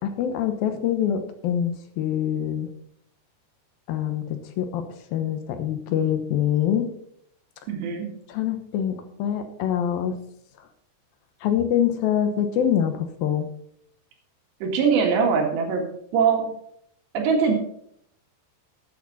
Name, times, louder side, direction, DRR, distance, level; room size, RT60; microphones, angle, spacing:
voice 1, 0.0-2.7 3.9-6.9 8.3-10.2 11.4-13.5, left 9 dB, 70° left, 8 dB, 2.5 m, -25 dB
voice 2, 7.7-8.1 14.6-15.9 16.1-16.5 17.1-17.6, right 6 dB, 80° right, 2 dB, 4.2 m, -21 dB
14.0 x 8.5 x 4.1 m, 0.69 s
omnidirectional pair, 4.9 m